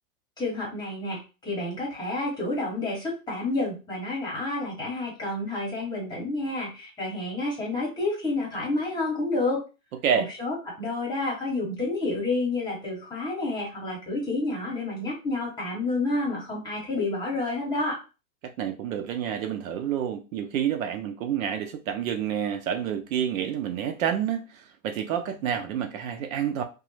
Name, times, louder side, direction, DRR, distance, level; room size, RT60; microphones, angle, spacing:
voice 1, 0.4-9.6 10.1-18.0, left 2 dB, 10° left, 1.0 m, -29 dB
voice 2, 18.4-26.6, right 9 dB, 60° right, 0.5 m, -29 dB
3.2 x 2.0 x 3.2 m
supercardioid pair, 150°, 46 cm